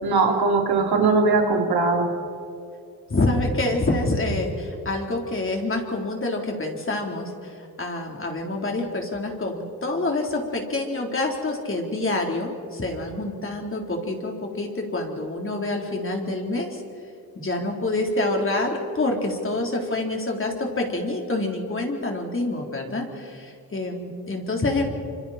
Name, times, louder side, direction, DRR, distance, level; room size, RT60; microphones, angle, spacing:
voice 1, 0.0-2.1, right 3 dB, 80° right, 2 dB, 3.1 m, -20 dB
voice 2, 3.1-7.5 7.8-16.8 17.4-24.8, left 2 dB, 35° left, 1 dB, 3.7 m, -27 dB
28.0 x 25.5 x 4.4 m, 2.5 s
cardioid pair, 95°, 37 cm